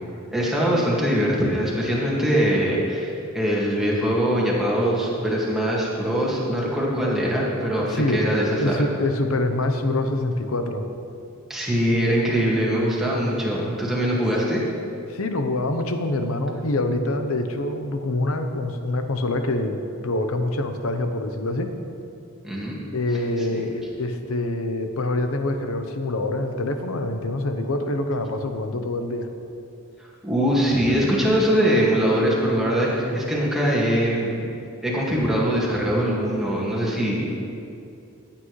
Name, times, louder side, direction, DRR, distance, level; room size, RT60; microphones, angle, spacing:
voice 1, 0.3-8.8 11.5-14.6 22.4-22.8 23.5-23.6 30.0-34.5 34.8-37.3, equal, ahead, -6 dB, 1.9 m, -22 dB
voice 2, 7.9-8.3 8.6-10.8 15.1-21.7 22.9-29.3, left 2 dB, 70° left, 7 dB, 0.8 m, -25 dB
15.5 x 8.8 x 3.2 m, 2.7 s
head